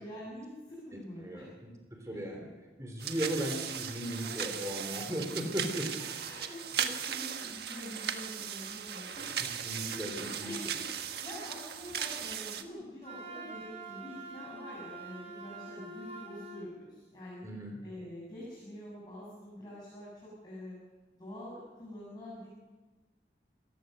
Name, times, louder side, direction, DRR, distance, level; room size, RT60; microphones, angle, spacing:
voice 1, 0.0-1.5 2.1-2.2 3.3-3.4 4.2-4.3 5.7-5.8 6.2-17.4 17.8-20.8 21.2-22.5, left 1 dB, 25° left, -7 dB, 6.7 m, -46 dB
voice 2, 1.9-2.5 2.8-5.8 9.6-10.1 10.4-10.5 17.4-17.7, equal, 20° right, 2 dB, 3.2 m, -36 dB
sound 1, 3.0-12.6, right 8 dB, 70° right, 1.5 m, -37 dB
Wind instrument woodwind instrument, 13.0-16.7, right 3 dB, 35° right, 3.8 m, -45 dB
28.0 x 15.5 x 6.7 m, 1.3 s
head